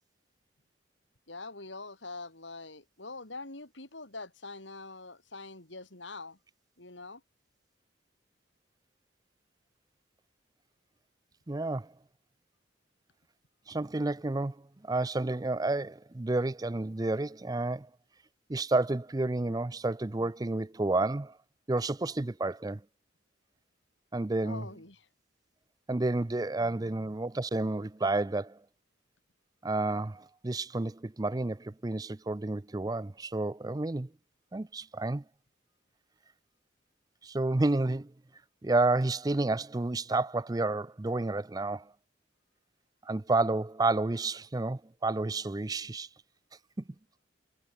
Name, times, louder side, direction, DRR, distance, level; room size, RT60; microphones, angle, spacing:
voice 1, 1.3-6.4 6.8-7.2 24.4-25.1, left 3 dB, 80° left, 5.6 m, -44 dB
voice 2, 11.5-11.9 13.7-14.6 14.8-17.9 18.5-21.3 21.7-22.8 24.1-24.7 25.9-28.6 29.6-34.1 34.5-35.2 37.2-38.1 38.6-41.9 43.1-46.1, right 2 dB, 20° right, 0.5 m, -30 dB
head